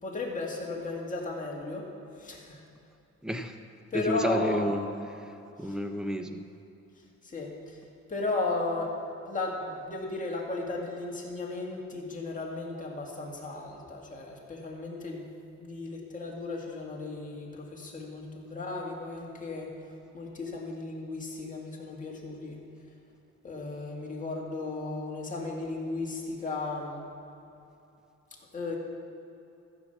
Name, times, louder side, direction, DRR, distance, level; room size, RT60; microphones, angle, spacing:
voice 1, 0.0-1.9 2.2-2.6 3.9-4.7 5.6-5.8 7.2-7.8 8.1-8.9 9.2-15.2 15.6-19.7 20.1-22.6 23.4-27.0 28.5-28.8, left 3 dB, 25° left, -2 dB, 2.2 m, -35 dB
voice 2, 3.2-3.5 3.9-4.9 5.6-6.5, equal, ahead, 7 dB, 0.6 m, -30 dB
14.0 x 5.7 x 7.1 m, 2.8 s
cardioid pair, 115°, 29 cm